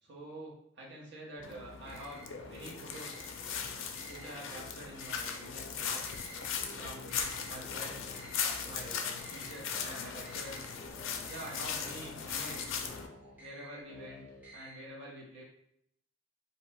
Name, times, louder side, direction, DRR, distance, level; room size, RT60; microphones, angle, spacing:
voice 1, 0.0-3.2 4.1-6.0 6.7-8.1 8.6-10.7 11.3-12.8 13.4-14.3 14.5-15.4, right 1 dB, 55° right, -4 dB, 0.8 m, -47 dB
sound 1, 1.4-13.1, left 6 dB, 70° left, 0.4 m, -39 dB
sound 2, 1.4-14.9, equal, 10° right, 0.7 m, -52 dB
2.7 x 2.2 x 3.2 m, 0.72 s
head